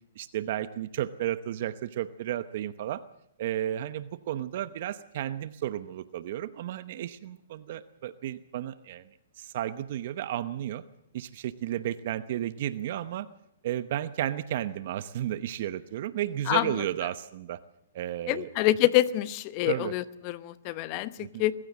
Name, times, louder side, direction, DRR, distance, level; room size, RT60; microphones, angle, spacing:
voice 1, 0.2-3.0 3.4-9.1 9.4-10.8 11.1-13.3 13.6-17.6 17.9-18.5 19.7-19.9 21.2-21.4, right 12 dB, 55° right, 14 dB, 0.9 m, -33 dB
voice 2, 18.3-21.5, left 16 dB, 35° left, 16 dB, 0.9 m, -26 dB
23.0 x 15.0 x 7.5 m, 0.76 s
hypercardioid pair, 140°, 0 cm